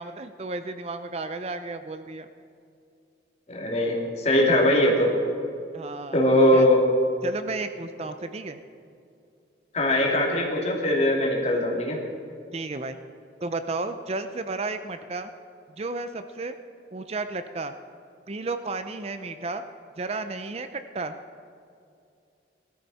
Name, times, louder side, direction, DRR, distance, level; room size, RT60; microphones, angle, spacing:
voice 1, 0.0-2.3 5.7-6.2 6.5-6.7 7.2-8.6 12.5-13.0 13.4-15.3 15.8-16.5 16.9-17.7 18.3-19.6 20.0-21.1, right 3 dB, 35° right, 9 dB, 0.5 m, -33 dB
voice 2, 3.5-5.1 6.1-6.8 9.7-12.0, left 1 dB, 40° left, -2 dB, 2.8 m, -21 dB
20.0 x 13.0 x 4.2 m, 2.5 s
head